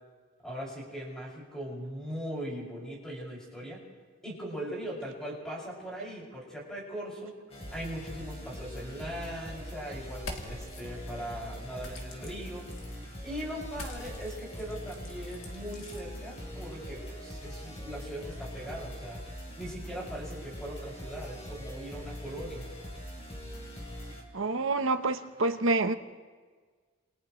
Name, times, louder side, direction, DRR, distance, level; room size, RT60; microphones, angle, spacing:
voice 1, 0.4-3.8 4.2-7.3 7.7-12.7 13.2-19.2 19.6-22.7, equal, 5° left, -4 dB, 6.3 m, -40 dB
sound 1, 7.5-24.2, equal, 30° left, 3.4 m, -42 dB
sound 2, 10.1-10.8 11.8-12.9 13.7-16.0, left 2 dB, 70° left, 2.9 m, -44 dB
voice 2, 24.3-25.9, right 3 dB, 65° right, 8 dB, 1.0 m, -27 dB
29.5 x 28.5 x 3.2 m, 1.5 s
head